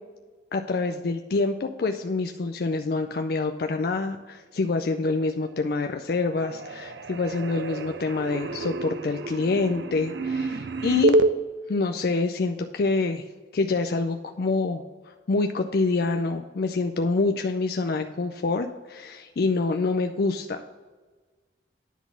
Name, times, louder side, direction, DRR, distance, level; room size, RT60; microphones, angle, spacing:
voice 1, 0.5-11.2 11.7-13.2 13.5-20.6, left 3 dB, 55° left, 6 dB, 0.4 m, -26 dB
sound 1, 5.3-5.9 6.1-11.3, right 2 dB, 70° right, 0.5 m, -28 dB
10.0 x 4.0 x 7.2 m, 1.4 s
head